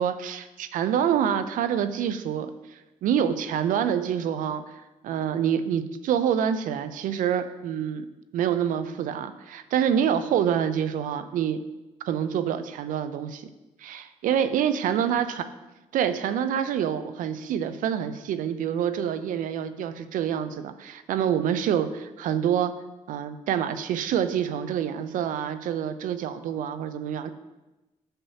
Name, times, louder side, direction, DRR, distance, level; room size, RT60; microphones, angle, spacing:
voice 1, 0.0-4.6 5.0-8.1 8.3-11.6 12.1-13.5 13.8-15.4 15.9-22.7 23.1-27.3, right 9 dB, 80° right, 11 dB, 0.5 m, -26 dB
8.9 x 6.8 x 2.8 m, 1.0 s
supercardioid pair, 55°, 14 cm